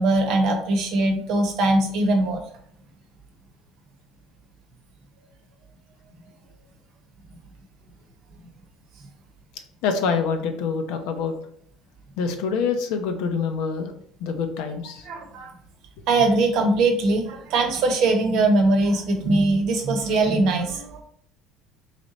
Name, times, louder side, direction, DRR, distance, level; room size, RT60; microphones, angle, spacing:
voice 1, 0.0-2.4 15.1-15.5 16.1-21.0, right 2 dB, 65° right, 5 dB, 0.9 m, -21 dB
voice 2, 9.8-11.4 12.2-13.9 14.2-15.1, left 5 dB, 75° left, 6 dB, 0.6 m, -26 dB
3.3 x 3.0 x 3.9 m, 0.64 s
supercardioid pair, 90°, 0 cm